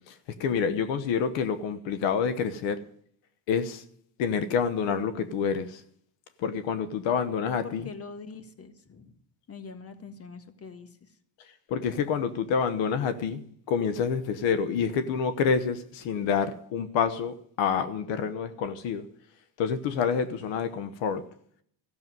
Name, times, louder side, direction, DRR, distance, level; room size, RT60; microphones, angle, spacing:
voice 1, 0.4-2.8 3.5-3.8 4.2-5.8 6.4-7.9 11.7-19.0 19.6-21.2, left 6 dB, 80° left, 1.1 m, -28 dB
voice 2, 7.6-9.2 9.5-11.2, left 4 dB, 30° left, 1.6 m, -44 dB
14.0 x 7.1 x 9.2 m
cardioid pair, 125°, 44 cm